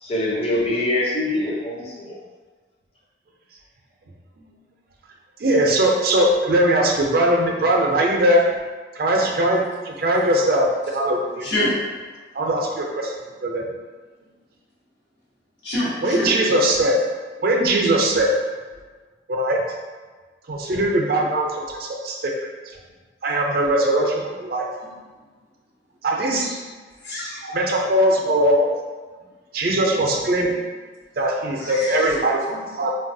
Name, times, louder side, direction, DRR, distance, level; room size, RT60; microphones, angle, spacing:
voice 1, 0.0-2.1, left 1 dB, 30° left, -4 dB, 0.5 m, -24 dB
voice 2, 5.4-8.5 8.9-11.5 12.3-13.1 13.4-13.7 16.0-17.0 17.4-18.3 19.3-19.6 20.5-22.5 23.2-24.7 26.0-26.5 27.5-28.7 29.5-30.5 31.2-32.9, right 1 dB, 55° right, 0 dB, 0.4 m, -20 dB
voice 3, 11.4-11.8 15.6-16.4 26.4-26.6 27.0-27.6 31.6-32.2, left 1 dB, 75° left, -7 dB, 1.0 m, -26 dB
3.1 x 2.3 x 2.6 m, 1.4 s
head